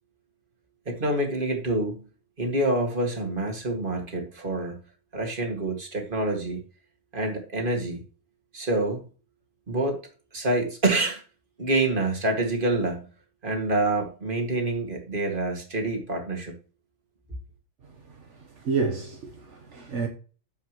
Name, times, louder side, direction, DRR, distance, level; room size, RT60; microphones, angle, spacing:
voice 1, 0.9-2.0 2.4-4.8 5.1-6.6 7.1-8.0 8.5-9.0 9.7-10.0 10.3-11.2 11.6-13.0 13.4-16.6, right 2 dB, 45° right, 2.2 m, -27 dB
voice 2, 18.6-20.1, right 4 dB, 70° right, 1.4 m, -29 dB
9.8 x 7.2 x 3.0 m
omnidirectional pair, 1.3 m